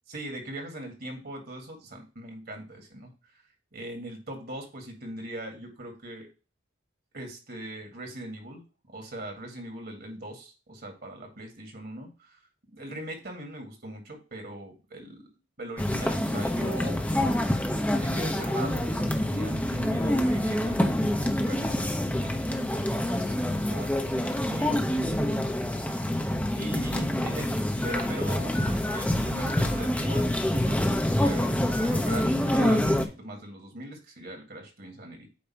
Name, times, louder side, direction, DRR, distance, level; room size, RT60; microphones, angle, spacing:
voice 1, 0.1-3.1 3.7-6.3 7.1-8.6 8.9-12.4 12.7-15.2 15.6-17.0 17.9-25.5 25.8-26.2 26.6-28.6 28.9-31.5 31.8-32.9 33.2-35.3, right 1 dB, 55° right, 3 dB, 2.1 m, -40 dB
sound 1, 15.8-33.1, left 1 dB, 10° left, 0.8 m, -26 dB
8.5 x 2.9 x 5.8 m, 0.32 s
head